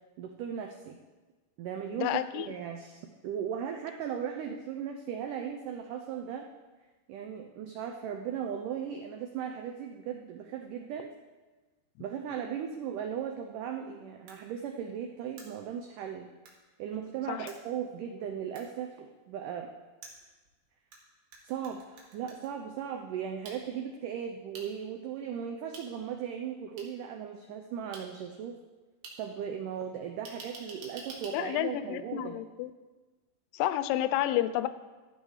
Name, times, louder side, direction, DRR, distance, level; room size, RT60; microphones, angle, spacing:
voice 1, 0.2-1.0 1.6-6.5 7.1-11.1 12.0-16.3 16.8-19.7 21.4-28.6 29.2-32.4, right 8 dB, 90° right, 3 dB, 1.8 m, -37 dB
voice 2, 1.9-2.5 17.3-17.5 31.3-32.7 33.5-34.7, left 13 dB, 90° left, 13 dB, 2.6 m, -30 dB
sound 1, 14.3-14.4 15.4-15.5 16.5-16.6 17.5-17.6 18.6-18.7 20.0-21.0 21.3-22.5 23.5-23.6 24.5-24.7 25.7-25.8 26.8-26.9 27.9-28.0 29.0-29.1 30.3-31.3, right 4 dB, 70° right, 3.5 m, -46 dB
12.5 x 8.3 x 4.8 m, 1.3 s
omnidirectional pair, 4.6 m